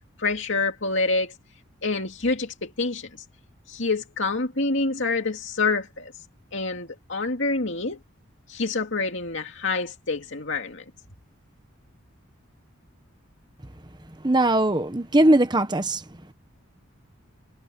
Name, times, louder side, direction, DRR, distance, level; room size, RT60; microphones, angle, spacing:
voice 1, 0.2-1.3 1.8-3.2 3.7-6.1 6.5-8.0 8.5-10.8, left 3 dB, 60° left, 2.6 m, -27 dB
voice 2, 14.2-16.0, right 1 dB, 20° right, 1.0 m, -20 dB
head